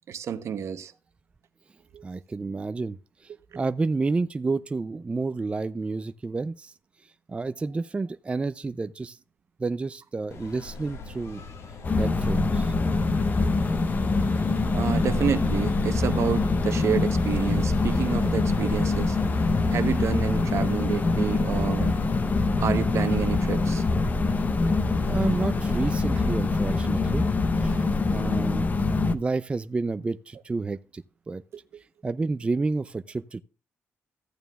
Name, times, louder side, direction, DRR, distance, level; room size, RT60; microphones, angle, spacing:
voice 1, 0.1-0.9 1.9-2.0 14.7-19.2 19.7-21.9 22.6-23.8, right 8 dB, 70° right, 0.8 m, -29 dB
voice 2, 2.0-3.0 3.2-6.7 7.3-9.2 9.6-11.4 12.0-12.7 13.4-13.7 25.1-27.2 27.6-28.7 29.1-31.4 32.0-33.4, right 3 dB, 25° right, 0.4 m, -30 dB
sound 1, 10.3-25.9, left 4 dB, 75° left, 1.6 m, -41 dB
sound 2, 11.8-29.1, left 3 dB, 35° left, 0.8 m, -24 dB
14.5 x 9.0 x 2.3 m
cardioid pair, 115°, 5 cm